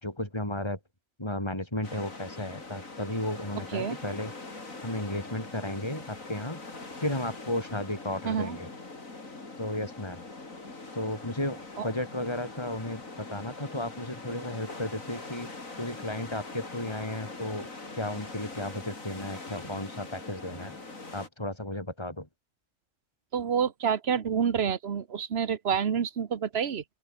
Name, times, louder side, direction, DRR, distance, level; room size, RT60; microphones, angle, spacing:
voice 1, 0.0-0.8 1.2-4.3 4.8-6.6 7.0-8.7 9.6-10.2 10.9-15.5 15.8-17.7 17.9-20.8 21.1-22.3, left 1 dB, 20° left, 5.5 m, -34 dB
sound 1, 1.8-21.3, left 3 dB, 80° left, 4.4 m, -43 dB
voice 2, 3.6-4.0 8.2-8.6 11.8-11.9 23.3-26.8, right 7 dB, 55° right, 1.3 m, -28 dB
open air
omnidirectional pair, 1.4 m